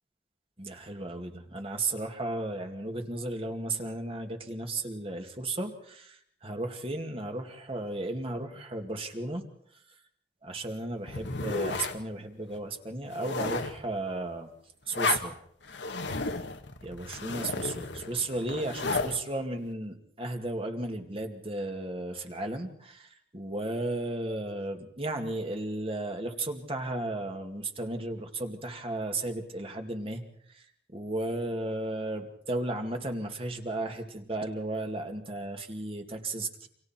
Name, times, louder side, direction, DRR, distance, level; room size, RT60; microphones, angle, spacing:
voice 1, 0.6-9.5 10.4-14.5 14.9-15.4 16.8-30.6 30.9-36.7, right 2 dB, 30° right, 4 dB, 2.3 m, -34 dB
sound 1, 11.1-12.0 12.6-12.7 13.1-13.8 14.9-15.3 15.7-19.2, left 3 dB, 75° left, 1.8 m, -33 dB
29.0 x 26.5 x 4.5 m, 0.66 s
head